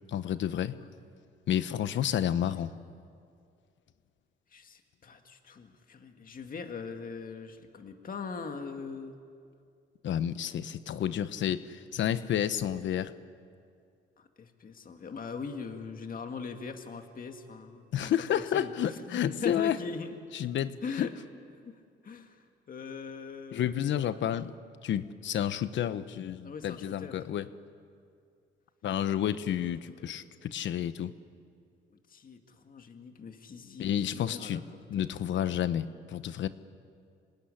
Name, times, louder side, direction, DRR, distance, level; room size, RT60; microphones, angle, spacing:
voice 1, 0.1-0.8 1.5-2.7 10.0-13.1 17.9-19.8 20.3-21.1 23.5-24.5 24.8-27.5 28.8-31.1 33.8-34.6 34.9-36.5, left 10 dB, 70° left, 13 dB, 1.0 m, -30 dB
voice 2, 4.5-9.1 14.2-20.2 20.8-21.1 21.6-24.3 26.4-27.2 30.0-30.3 31.9-34.6 34.9-35.2, left 5 dB, 45° left, 5 dB, 2.0 m, -41 dB
26.5 x 19.0 x 10.0 m, 2.3 s
cardioid pair, 90°, 20 cm